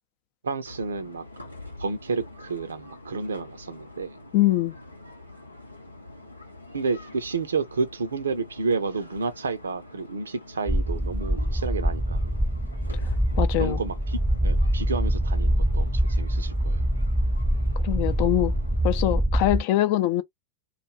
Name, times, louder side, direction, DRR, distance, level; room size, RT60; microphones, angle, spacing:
voice 1, 0.4-1.2 1.8-4.1 6.7-12.3 13.6-16.8, right 4 dB, 70° right, 0.6 m, -30 dB
sound 1, 0.7-19.2, left 2 dB, 90° left, 0.8 m, -46 dB
voice 2, 4.3-4.8 13.0-13.8 17.8-18.5 18.8-20.2, left 15 dB, 45° left, 0.5 m, -23 dB
sound 2, 10.7-19.6, right 1 dB, ahead, 0.6 m, -24 dB
2.4 x 2.2 x 3.1 m
figure-of-eight pair, 90°, 0 cm